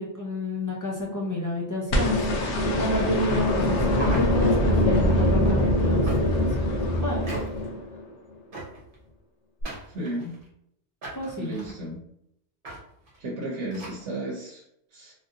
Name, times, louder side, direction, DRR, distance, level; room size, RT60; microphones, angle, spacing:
voice 1, 0.0-2.3 2.7-7.3 11.1-11.5, left 1 dB, 30° left, -4 dB, 0.3 m, -31 dB
sound 1, 1.9-8.1 9.6-9.7, left 1 dB, 80° left, 0.9 m, -23 dB
sound 2, 3.9-4.8 6.1-6.5 7.2-7.7 8.5-9.0 9.7-10.5 11.0-11.7 12.6-12.8 13.1-13.2 13.7-14.0, right 1 dB, 50° right, 1.1 m, -38 dB
voice 2, 9.9-10.3 11.4-12.0 13.2-14.6 14.9-15.1, right 1 dB, 75° right, -3 dB, 1.0 m, -33 dB
3.1 x 2.5 x 2.6 m, 0.75 s
omnidirectional pair, 1.2 m